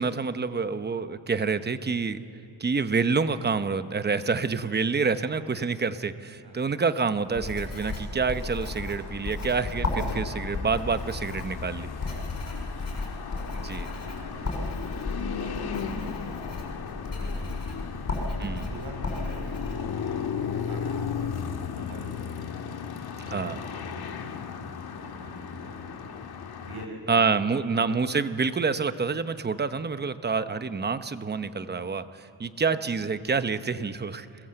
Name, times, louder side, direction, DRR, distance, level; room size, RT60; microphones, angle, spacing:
voice 1, 0.0-2.2 2.6-11.9 13.5-13.9 18.4-18.7 23.3-23.6 27.1-34.3, right 5 dB, 20° right, 11 dB, 0.8 m, -27 dB
Writing, 7.3-19.7, left 2 dB, 35° left, 7.0 m, -34 dB
sound 1, 8.0-26.9, left 6 dB, 55° left, 1.7 m, -36 dB
voice 2, 12.7-13.1 13.8-17.9 18.4-22.6 23.2-26.1 26.6-28.1 30.5-30.7, right 2 dB, 55° right, 1 dB, 7.4 m, -46 dB
28.0 x 22.0 x 7.8 m, 2.7 s
wide cardioid pair, 135°, 45 cm